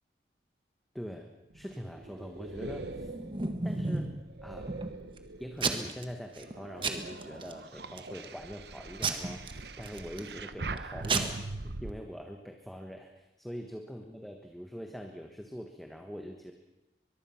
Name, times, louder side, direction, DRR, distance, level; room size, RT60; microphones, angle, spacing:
voice 1, 0.9-3.1 3.6-4.1 4.4-4.7 5.4-16.5, equal, ahead, 3 dB, 1.4 m, -43 dB
sound 1, 1.5-5.8 6.3-11.9, right 3 dB, 70° right, 1.1 m, -43 dB
Packing tape duct tape / Tearing, 2.8-4.2 4.7-5.2 5.6-6.0 6.4-6.5 6.8-7.5 8.0-8.3 9.0-10.3 10.8-10.9 11.0-11.2, right 4 dB, 30° right, 1.6 m, -32 dB
23.0 x 22.5 x 5.9 m, 0.98 s
head